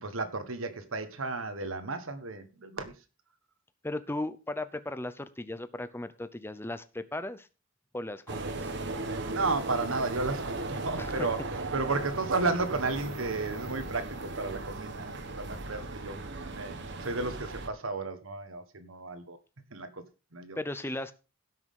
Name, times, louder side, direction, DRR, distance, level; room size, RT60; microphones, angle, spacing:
voice 1, 0.0-2.9 9.3-11.4 11.7-16.7 17.0-19.4 19.7-20.0 20.3-20.6, right 3 dB, 75° right, 1.4 m, -33 dB
voice 2, 3.8-7.5 7.9-8.7 11.0-11.3 20.6-21.1, left 2 dB, 10° left, 0.6 m, -36 dB
sound 1, 8.3-17.7, right 2 dB, 55° right, 1.2 m, -37 dB
16.5 x 6.3 x 3.7 m
head